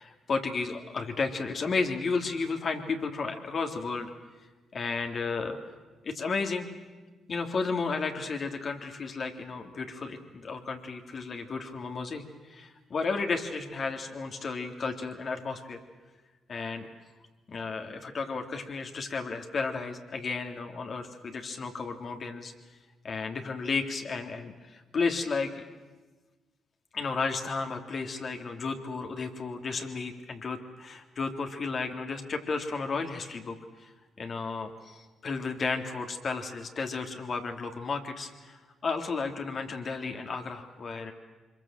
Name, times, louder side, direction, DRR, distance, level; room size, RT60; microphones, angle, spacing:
voice 1, 0.0-4.1 4.7-5.6 6.0-6.7 7.3-15.8 16.5-16.9 17.5-22.5 23.0-25.6 26.9-33.9 34.2-41.1, left 4 dB, 50° left, 4 dB, 3.2 m, -33 dB
26.0 x 23.0 x 7.6 m, 1.3 s
hypercardioid pair, 45°, 0 cm